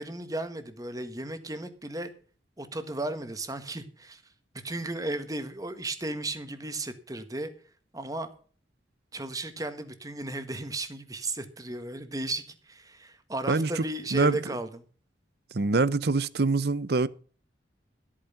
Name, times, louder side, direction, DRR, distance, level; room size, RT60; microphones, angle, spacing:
voice 1, 0.0-2.1 2.6-4.2 4.6-7.5 7.9-8.3 9.1-14.7, right 2 dB, 20° right, 1.5 m, -35 dB
voice 2, 13.5-13.8 14.1-14.4 15.5-17.1, right 3 dB, 55° right, 0.7 m, -24 dB
13.5 x 8.8 x 5.8 m
head